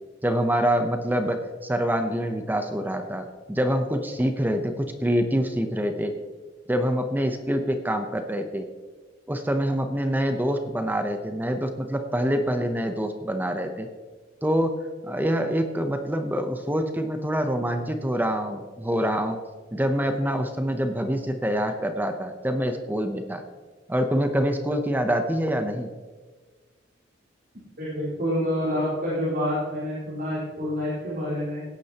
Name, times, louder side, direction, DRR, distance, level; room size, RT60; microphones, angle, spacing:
voice 1, 0.2-6.1 6.7-8.7 9.3-13.9 14.4-14.7 15.0-19.4 19.7-23.4 23.9-25.9, equal, 10° right, 6 dB, 0.7 m, -25 dB
voice 2, 27.8-31.6, equal, 55° right, -10 dB, 4.3 m, -27 dB
17.5 x 9.7 x 2.9 m, 1.3 s
head